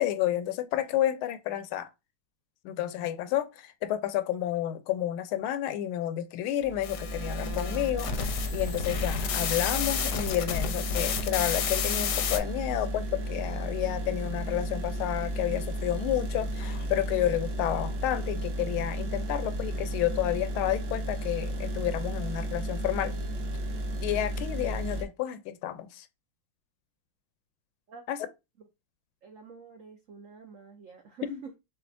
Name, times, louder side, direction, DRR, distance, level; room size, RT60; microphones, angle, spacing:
voice 1, 0.0-1.9 2.6-23.1 24.0-26.1 28.1-28.2 31.2-31.4, left 12 dB, 85° left, 1.4 m, -30 dB
sound 1, 6.6-25.0, right 1 dB, 55° right, 0.9 m, -33 dB
sound 2, 6.8-12.4, left 8 dB, 70° left, 1.0 m, -32 dB
voice 2, 29.2-31.6, right 5 dB, 85° right, 0.7 m, -47 dB
6.4 x 2.4 x 2.5 m
omnidirectional pair, 2.2 m